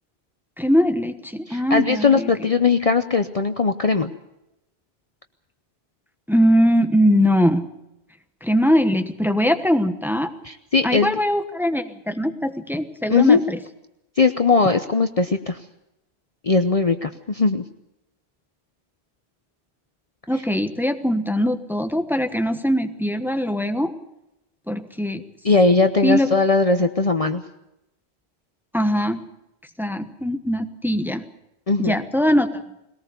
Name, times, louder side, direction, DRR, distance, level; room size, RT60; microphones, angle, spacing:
voice 1, 0.6-2.5 6.3-7.6 8.4-10.3 10.8-13.6 20.3-23.9 24.7-25.2 26.0-26.3 28.7-29.2 29.8-31.2 31.8-32.5, equal, ahead, 8 dB, 1.1 m, -21 dB
voice 2, 1.5-4.1 10.4-11.1 13.1-13.4 14.2-15.6 16.4-17.6 25.4-27.4 31.7-32.0, left 4 dB, 40° left, 8 dB, 0.8 m, -19 dB
21.0 x 18.5 x 6.9 m, 0.87 s
omnidirectional pair, 1.1 m